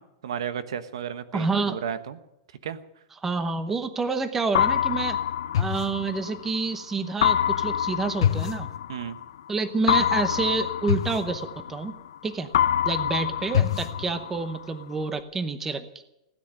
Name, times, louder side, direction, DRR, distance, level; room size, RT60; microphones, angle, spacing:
voice 1, 0.0-2.2 2.6-2.8 8.9-9.2, right 8 dB, 85° right, 12 dB, 1.2 m, -33 dB
voice 2, 1.3-1.8 3.2-5.2 5.6-8.7 9.5-11.9 12.2-12.5 12.8-15.9, right 4 dB, 10° right, 11 dB, 0.9 m, -28 dB
sound 1, 4.5-6.6 7.2-9.3 9.9-12.2 12.5-14.6, left 10 dB, 70° left, 0.6 m, -25 dB
17.0 x 9.4 x 8.9 m, 0.89 s
supercardioid pair, 165°, 3 cm